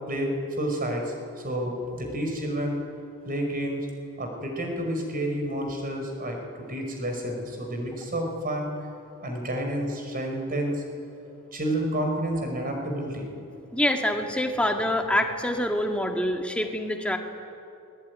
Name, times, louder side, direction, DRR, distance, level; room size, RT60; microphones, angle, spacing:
voice 1, 0.1-1.1 1.4-2.8 3.3-3.9 4.2-8.7 9.2-10.8 11.5-13.3, right 1 dB, 40° right, 3 dB, 5.3 m, -29 dB
voice 2, 13.7-17.2, left 1 dB, 5° left, 3 dB, 2.1 m, -26 dB
29.5 x 20.5 x 9.7 m, 2.6 s
head